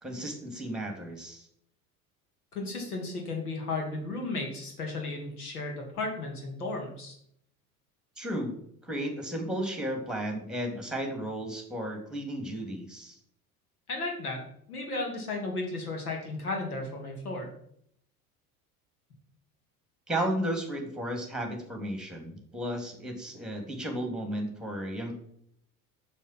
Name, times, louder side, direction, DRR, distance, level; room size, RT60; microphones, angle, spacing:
voice 1, 0.0-1.5 8.2-13.2 20.1-25.1, right 1 dB, ahead, 3 dB, 3.0 m, -34 dB
voice 2, 2.5-7.2 13.9-17.5, left 2 dB, 80° left, 1 dB, 2.7 m, -34 dB
7.1 x 7.0 x 6.1 m, 0.68 s
figure-of-eight pair, 70°, 44 cm